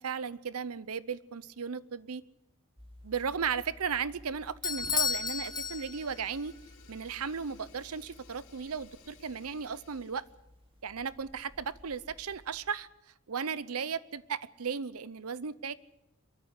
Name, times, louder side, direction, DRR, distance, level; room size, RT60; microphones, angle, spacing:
voice 1, 0.0-2.2 3.0-6.5 6.9-10.2 10.8-12.9 13.3-15.7, right 6 dB, 85° right, 17 dB, 0.7 m, -35 dB
sound 1, 2.8-12.7, left 1 dB, 25° right, 3.5 m, -56 dB
Bell / Doorbell, 4.6-6.3, left 6 dB, 20° left, 0.8 m, -32 dB
Fire, 4.7-10.3, left 4 dB, 90° left, 3.9 m, -58 dB
23.5 x 13.5 x 9.8 m, 0.90 s
head